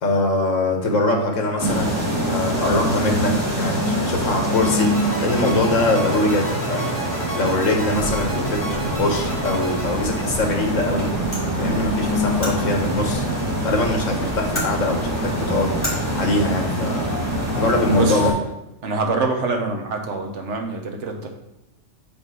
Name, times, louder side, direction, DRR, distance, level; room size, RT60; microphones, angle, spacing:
voice 1, 0.0-6.9 7.3-11.1 11.6-13.2 13.6-15.8 16.1-17.2 17.6-18.3, left 2 dB, 75° left, 2 dB, 1.5 m, -22 dB
sound 1, 1.6-18.3, equal, 10° right, 2.1 m, -24 dB
sound 2, 4.5-10.8, right 1 dB, 40° left, 2.0 m, -33 dB
sound 3, 7.9-15.9, left 2 dB, 10° left, 2.3 m, -35 dB
voice 2, 17.9-18.2 18.8-21.3, right 3 dB, 65° right, 3 dB, 1.2 m, -25 dB
5.3 x 4.2 x 6.0 m, 0.92 s
omnidirectional pair, 1.3 m